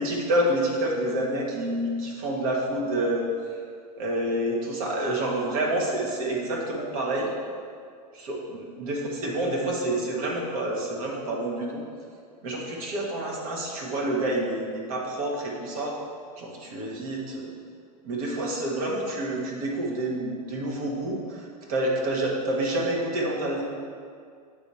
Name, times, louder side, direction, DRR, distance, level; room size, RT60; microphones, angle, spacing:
voice 1, 0.0-3.6 4.0-7.3 8.1-11.8 12.4-16.0 16.4-17.5 18.0-23.6, right 1 dB, 60° right, -2 dB, 1.4 m, -28 dB
8.3 x 3.4 x 4.2 m, 2.1 s
hypercardioid pair, 105°, 21 cm